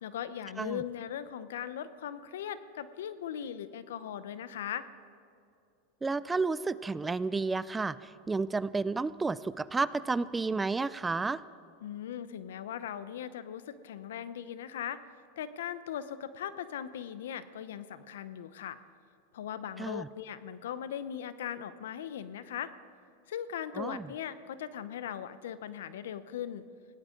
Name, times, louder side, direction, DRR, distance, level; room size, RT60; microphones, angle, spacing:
voice 1, 0.0-4.9 11.8-15.0 15.4-18.8 19.3-22.7 23.3-26.6, left 9 dB, 80° left, 14 dB, 0.8 m, -39 dB
voice 2, 6.0-8.0 8.3-11.4 19.8-20.1 23.8-24.1, right 3 dB, 15° right, 17 dB, 0.4 m, -31 dB
21.5 x 17.0 x 3.9 m, 2.5 s
hypercardioid pair, 115°, 0 cm